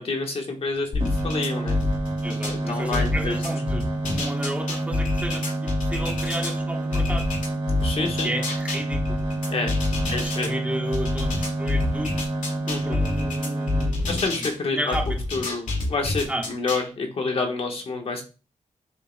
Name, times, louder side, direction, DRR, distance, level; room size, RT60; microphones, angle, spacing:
voice 1, 0.0-1.8 2.5-3.4 7.8-8.3 9.5-9.7 10.1-10.6 12.7-13.0 14.1-14.9 15.3-18.2, left 3 dB, 50° left, 3 dB, 1.3 m, -28 dB
sound 1, 0.9-2.6 2.9-6.5 6.9-10.5 10.9-14.6 14.9-16.9, left 2 dB, 85° left, 2.1 m, -27 dB
sound 2, 1.0-13.9, right 2 dB, 40° right, 2.5 m, -28 dB
voice 2, 2.2-7.3 8.2-9.2 9.6-9.7 10.1-12.3 12.8-14.4 14.7-15.2 16.3-16.5, right 1 dB, 10° right, 1 dB, 1.2 m, -33 dB
7.6 x 6.5 x 2.2 m, 0.33 s
wide cardioid pair, 165°, 13 cm